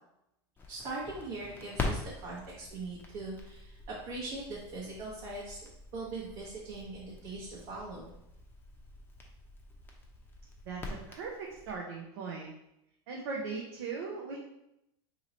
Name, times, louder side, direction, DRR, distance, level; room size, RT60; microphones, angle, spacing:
Crackle, 0.6-11.8, left 3 dB, 15° left, 0.6 m, -43 dB
voice 1, 0.7-5.6 5.9-8.1, right 2 dB, 55° right, -5 dB, 1.0 m, -41 dB
voice 2, 10.7-12.5 13.1-14.4, right 4 dB, 80° right, -2 dB, 0.7 m, -39 dB
2.9 x 2.8 x 4.0 m, 0.84 s
supercardioid pair, 120°, 14 cm